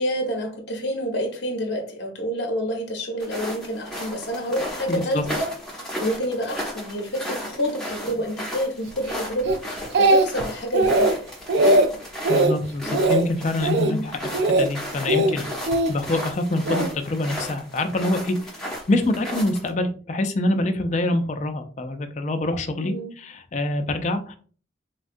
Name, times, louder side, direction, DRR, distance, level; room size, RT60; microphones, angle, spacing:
voice 1, 0.0-11.1 13.8-14.1 22.7-23.1, equal, 60° left, 3 dB, 0.7 m, -28 dB
sound 1, 3.2-19.7, equal, 5° left, 0.7 m, -34 dB
voice 2, 4.9-5.2 12.3-15.5 15.9-18.4 18.9-24.3, left 2 dB, 35° left, 8 dB, 0.3 m, -25 dB
Speech, 9.5-10.5 10.7-11.1 11.5-11.9 12.2-12.5 12.9-13.2 13.6-13.9 14.3-14.7 15.1-15.9 16.7-16.9, right 2 dB, 60° right, 0.3 m, -19 dB
3.5 x 2.2 x 2.5 m, 0.41 s
head